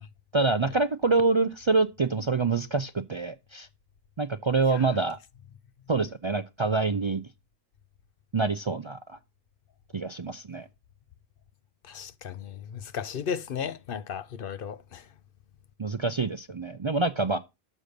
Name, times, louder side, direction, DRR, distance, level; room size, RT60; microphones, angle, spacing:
voice 1, 0.3-3.7 4.2-5.2 5.9-7.2 8.3-9.2 9.9-10.7 15.8-17.4, right 3 dB, 40° right, 0.4 m, -26 dB
voice 2, 11.8-15.1, left 7 dB, 65° left, 0.8 m, -35 dB
7.4 x 6.8 x 6.4 m
omnidirectional pair, 1.0 m